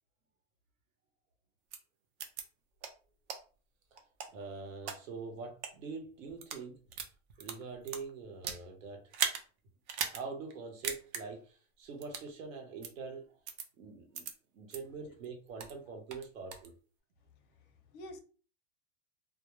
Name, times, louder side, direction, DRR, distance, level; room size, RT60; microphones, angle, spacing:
sound 1, 1.7-1.8 2.2-2.4 2.8-2.9 3.3-3.4 4.0-5.0 5.5-5.7 6.3-6.6 6.9-8.6 9.1-9.4 9.9-10.2 10.5-10.6 10.8-11.2 12.0-12.3 12.8-12.9 13.5-13.7 14.1-14.3 14.7-14.8 15.2-15.8 16.1-16.7, right 7 dB, 60° right, 0.7 m, -37 dB
voice 1, 4.3-6.8 7.4-9.0 10.1-13.3 13.8-14.3 14.5-16.7, right 4 dB, 85° right, 1.0 m, -44 dB
voice 2, 17.4-18.2, left 1 dB, 30° left, 0.4 m, -50 dB
2.2 x 2.1 x 3.0 m
hypercardioid pair, 130°, 39 cm